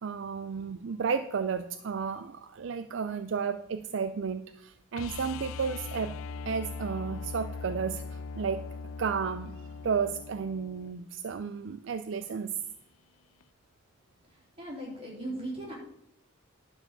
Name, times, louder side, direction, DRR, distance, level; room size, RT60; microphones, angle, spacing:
voice 1, 0.0-6.1 6.4-8.7 9.0-12.6, right 6 dB, 60° right, 10 dB, 0.4 m, -33 dB
sound 1, 4.9-10.9 13.4-13.5, left 4 dB, 80° left, 0.4 m, -40 dB
voice 2, 14.3-15.7, right 1 dB, 30° right, -3 dB, 3.5 m, -38 dB
11.0 x 4.9 x 6.5 m, 0.74 s
head